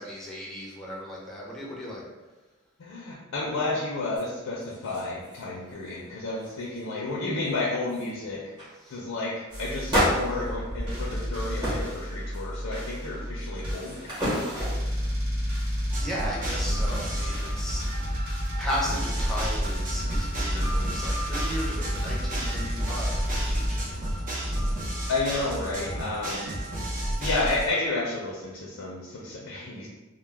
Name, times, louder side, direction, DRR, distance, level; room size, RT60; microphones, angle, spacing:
voice 1, 0.0-2.0 8.8-9.0 16.0-18.2 18.6-24.8, equal, ahead, -5 dB, 0.5 m, -36 dB
voice 2, 2.8-8.5 8.9-14.4 25.1-26.5 27.2-29.9, left 2 dB, 75° left, -4 dB, 0.4 m, -31 dB
sound 1, 4.1-4.2 4.6-5.4 5.7-6.0 6.4-6.9 7.4-7.5 7.9-8.1 8.6-8.8 9.9-11.3 11.6-11.9 12.3-12.8 13.4-15.0 21.0-22.4, equal, 20° right, 0.9 m, -32 dB
sound 2, 9.5-23.8, equal, 80° right, 0.8 m, -31 dB
sound 3, 15.9-27.7, right 1 dB, 40° right, 0.6 m, -31 dB
2.2 x 2.0 x 3.2 m, 1.2 s
head